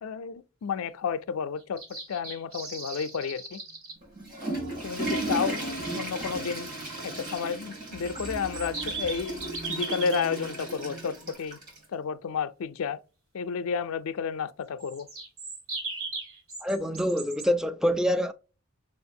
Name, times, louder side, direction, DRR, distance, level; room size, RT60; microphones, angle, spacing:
voice 1, 0.0-3.6 4.8-6.7 7.0-9.4 9.7-11.6 11.9-13.0 13.3-15.1, left 6 dB, 85° left, 0.4 m, -31 dB
sound 1, 1.6-3.9 7.8-10.2 14.8-17.5, right 3 dB, 80° right, 1.9 m, -38 dB
sound 2, 3.7-4.2 4.9-11.3, right 3 dB, 60° right, 1.4 m, -49 dB
Water / Toilet flush, 4.0-11.8, right 2 dB, 40° right, 2.6 m, -35 dB
voice 2, 16.6-18.3, equal, 5° right, 0.3 m, -26 dB
6.4 x 2.4 x 2.7 m
head